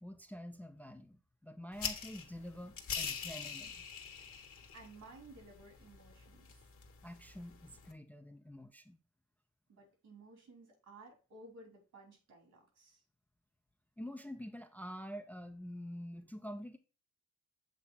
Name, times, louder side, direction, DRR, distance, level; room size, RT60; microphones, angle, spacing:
voice 1, 0.0-3.8 7.0-9.0 14.0-16.8, equal, 5° left, 0.5 m, -47 dB
sound 1, 1.7-7.9, left 6 dB, 50° left, 1.2 m, -44 dB
voice 2, 4.5-6.5 9.7-13.0, right 2 dB, 70° right, 3.5 m, -56 dB
7.5 x 3.2 x 4.0 m
cardioid pair, 90°, 30 cm